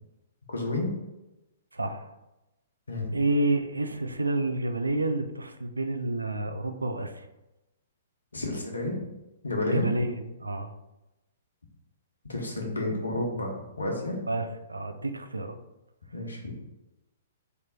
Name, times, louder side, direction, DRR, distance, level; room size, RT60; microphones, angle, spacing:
voice 1, 0.5-1.0 2.9-3.2 8.3-9.0 9.4-9.9 12.3-14.2 16.1-16.6, left 2 dB, 85° left, 0 dB, 1.0 m, -31 dB
voice 2, 1.7-2.1 3.1-7.2 9.6-10.7 14.3-14.4 14.7-15.6, right 2 dB, 90° right, 8 dB, 0.4 m, -29 dB
3.4 x 3.0 x 4.1 m, 0.97 s
figure-of-eight pair, 120°, 0 cm